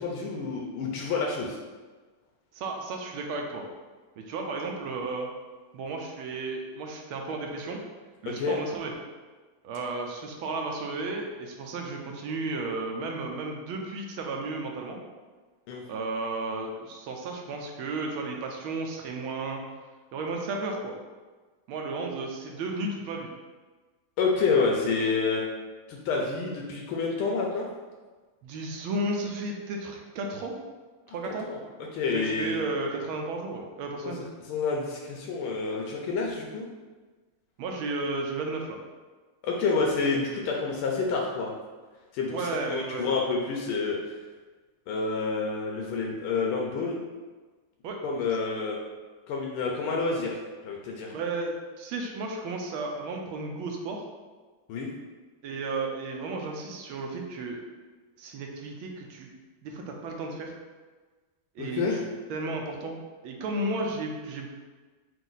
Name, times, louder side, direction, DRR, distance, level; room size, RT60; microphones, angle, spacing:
voice 1, 0.0-1.6 8.3-8.6 15.7-15.8 24.2-25.4 25.9-27.7 31.1-31.2 31.5-31.6 31.9-32.6 34.0-36.6 39.4-41.5 42.1-44.0 44.9-47.0 48.0-48.8 49.3-50.4 50.6-51.1 54.7-54.9 61.6-62.0, left 4 dB, 85° left, -1 dB, 1.5 m, -28 dB
voice 2, 2.5-3.6 4.2-5.3 5.7-7.8 8.2-8.9 9.6-15.0 15.8-19.6 20.1-21.0 21.7-23.3 28.4-30.6 31.1-31.5 32.1-34.2 37.6-38.8 42.3-43.1 47.8-48.0 51.1-54.0 55.4-57.6 58.2-59.3 59.6-60.5 61.5-61.9 62.3-64.6, right 3 dB, 80° right, 1 dB, 1.5 m, -33 dB
5.1 x 2.6 x 3.8 m, 1.3 s
omnidirectional pair, 2.3 m